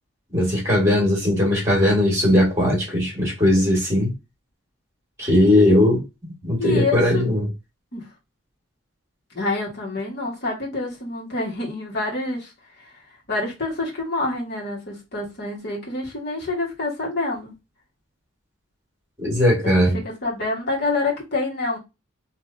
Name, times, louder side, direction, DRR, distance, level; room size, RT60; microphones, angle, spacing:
voice 1, 0.3-4.1 5.2-6.0 6.4-7.5 19.2-20.0, left 1 dB, 15° right, 1.9 m, -18 dB
voice 2, 6.6-7.2 7.9-8.1 9.3-12.5 13.3-17.5 19.6-21.8, left 2 dB, 50° left, 1.6 m, -27 dB
3.5 x 2.8 x 2.7 m
head